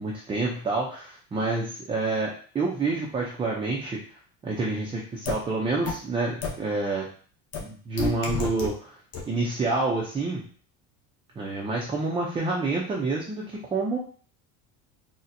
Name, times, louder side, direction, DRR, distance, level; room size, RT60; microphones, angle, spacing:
voice 1, 0.0-4.0 4.4-7.1 7.6-8.9 9.3-10.4 11.4-14.0, right 3 dB, 15° right, -3 dB, 0.4 m, -28 dB
sound 1, 5.3-5.4 5.9-6.0 6.4-6.5 7.5-7.6 8.0-8.7 9.1-9.2, left 4 dB, 40° left, 0.8 m, -28 dB
4.1 x 2.1 x 2.6 m, 0.43 s
cardioid pair, 140°, 38 cm